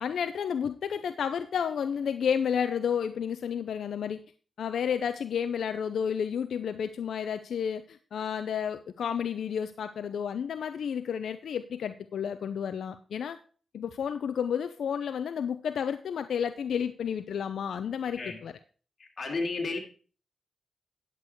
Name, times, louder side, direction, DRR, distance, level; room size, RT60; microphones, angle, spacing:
voice 1, 0.0-4.2 4.6-13.4 13.7-18.6, left 7 dB, 85° left, 10 dB, 0.6 m, -31 dB
voice 2, 19.2-19.8, left 3 dB, 50° left, 2 dB, 3.3 m, -31 dB
10.5 x 8.2 x 4.6 m, 0.39 s
cardioid pair, 80°, 0 cm